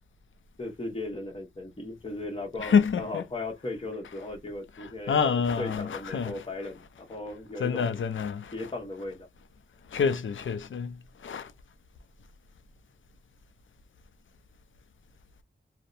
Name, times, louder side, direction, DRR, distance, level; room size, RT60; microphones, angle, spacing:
voice 1, 0.6-8.0 8.5-9.3, left 2 dB, 30° left, 1.1 m, -37 dB
voice 2, 2.6-3.2 5.1-6.3 7.6-8.5 9.9-11.5, left 6 dB, 75° left, 0.5 m, -27 dB
2.6 x 2.1 x 2.4 m
cardioid pair, 55°, 20 cm